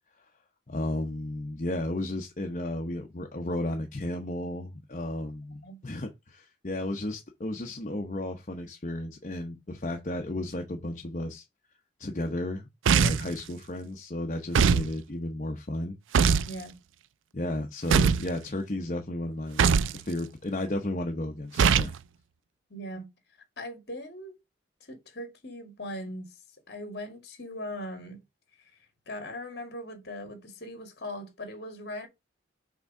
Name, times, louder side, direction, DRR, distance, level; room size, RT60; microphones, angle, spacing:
voice 1, 0.7-11.4 12.0-16.0 17.3-19.6 19.9-21.9, left 1 dB, 40° left, 0.8 m, -33 dB
voice 2, 5.5-5.8 16.4-16.8 22.7-23.1 23.6-24.4 24.8-26.3 26.7-28.2 29.1-32.1, left 1 dB, 55° left, 2.0 m, -39 dB
sound 1, 12.9-13.3 14.5-14.9 16.1-16.5 17.9-18.3 19.6-20.0 21.6-22.0, right 6 dB, 85° right, 0.4 m, -21 dB
6.0 x 3.6 x 5.3 m
head